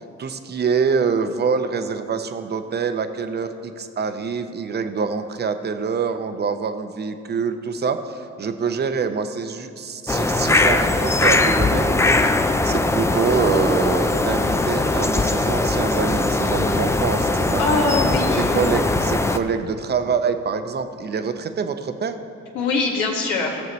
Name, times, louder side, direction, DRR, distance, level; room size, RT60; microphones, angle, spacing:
voice 1, 0.0-11.9 12.6-17.9 18.4-22.1, right 5 dB, 35° right, 8 dB, 0.7 m, -25 dB
sound 1, 10.1-19.4, left 2 dB, 10° left, 0.4 m, -20 dB
voice 2, 17.6-18.7 22.5-23.6, left 3 dB, 80° left, -2 dB, 1.9 m, -23 dB
17.0 x 6.5 x 3.1 m, 2.4 s
cardioid pair, 90°, 30 cm